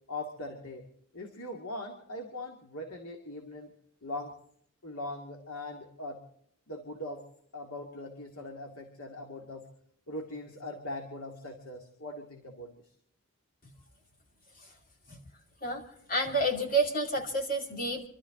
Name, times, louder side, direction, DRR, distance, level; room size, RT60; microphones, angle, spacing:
voice 1, 0.1-0.9 1.1-3.8 4.0-4.4 4.8-6.2 6.7-7.3 7.5-9.7 10.1-12.8, left 1 dB, 80° left, 3 dB, 2.2 m, -41 dB
voice 2, 16.1-18.1, right 2 dB, 40° left, 2 dB, 2.7 m, -29 dB
27.0 x 12.5 x 3.8 m, 0.66 s
head